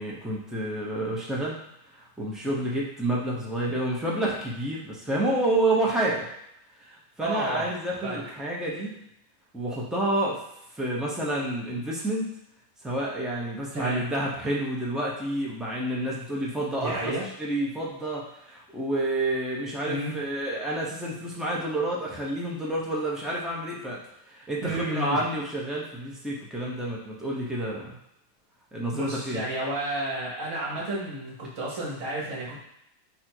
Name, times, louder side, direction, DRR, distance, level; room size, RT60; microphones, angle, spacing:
voice 1, 0.0-1.6 1.9-6.3 6.8-9.0 9.5-10.4 10.7-12.3 12.8-24.0 24.3-28.0 28.7-29.5, right 1 dB, ahead, -4 dB, 0.4 m, -29 dB
voice 2, 7.2-7.7 8.0-8.2 13.7-14.0 16.8-17.3 19.8-20.1 24.6-25.2 28.9-32.6, right 1 dB, 60° right, -5 dB, 1.6 m, -31 dB
4.3 x 2.7 x 4.4 m, 0.80 s
omnidirectional pair, 1.6 m